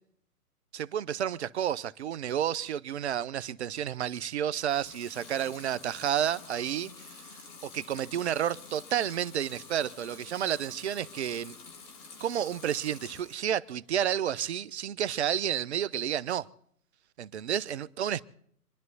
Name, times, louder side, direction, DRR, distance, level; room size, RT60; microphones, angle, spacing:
voice 1, 0.7-7.2 7.6-11.5 12.2-16.5 17.2-18.2, right 10 dB, 45° right, 0.7 m, -31 dB
Water tap faucet / Sink (filling or washing) / Liquid, 4.6-13.5 13.9-14.6, left 5 dB, 30° left, 2.2 m, -49 dB
27.0 x 11.0 x 4.0 m
hypercardioid pair, 135°, 46 cm